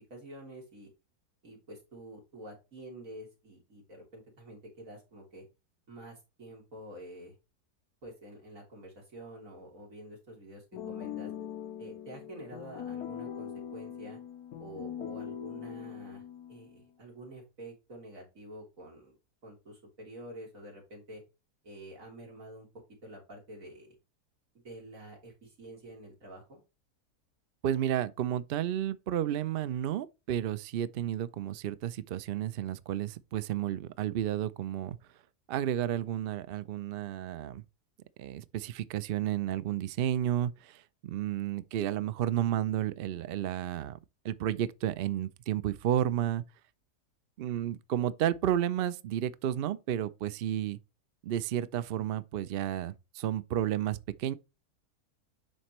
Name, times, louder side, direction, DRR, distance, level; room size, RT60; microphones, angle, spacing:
voice 1, 0.1-0.9 1.4-5.5 5.9-7.4 8.0-11.3 11.8-14.2 14.6-16.2 16.5-19.2 19.4-21.2 21.6-22.7 23.0-24.0 24.6-26.6, right 1 dB, 60° right, 3.3 m, -48 dB
sound 1, 10.7-16.8, left 9 dB, 80° left, 1.3 m, -41 dB
voice 2, 27.6-35.0 35.5-37.6 38.2-44.0 44.2-46.4 47.4-50.8 51.2-54.3, right 11 dB, 75° right, 0.5 m, -32 dB
11.0 x 4.4 x 3.0 m
omnidirectional pair, 1.6 m